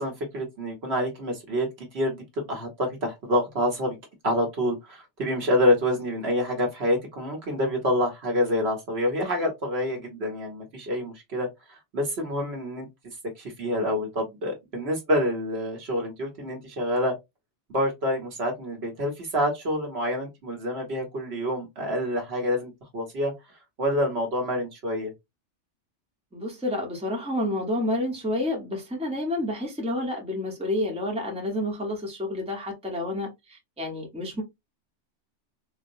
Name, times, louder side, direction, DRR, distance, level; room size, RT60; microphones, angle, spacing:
voice 1, 0.0-4.0 4.2-12.9 13.4-17.2 17.7-23.3 23.8-25.1, equal, 60° right, 1.2 m, -27 dB
voice 2, 26.3-34.4, left 1 dB, 5° right, 0.9 m, -29 dB
3.8 x 2.1 x 2.6 m
omnidirectional pair, 1.2 m